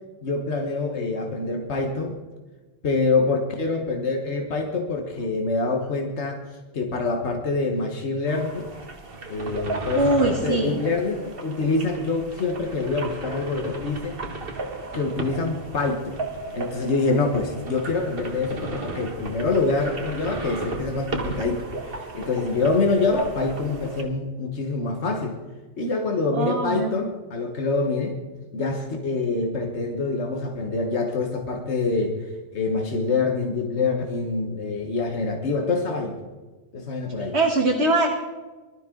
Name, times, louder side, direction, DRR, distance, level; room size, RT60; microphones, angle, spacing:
voice 1, 0.2-2.1 2.8-6.4 6.7-8.6 9.3-14.2 14.9-16.2 16.5-25.4 25.8-28.2 28.5-32.3 32.5-36.2 36.7-37.4, left 3 dB, 85° left, 3 dB, 1.7 m, -25 dB
sound 1, 8.2-24.0, right 3 dB, 55° right, 1.7 m, -34 dB
voice 2, 10.0-10.7 26.3-26.9 37.3-38.1, right 2 dB, 75° right, 1 dB, 1.8 m, -21 dB
20.5 x 12.5 x 3.8 m, 1.3 s
omnidirectional pair, 1.1 m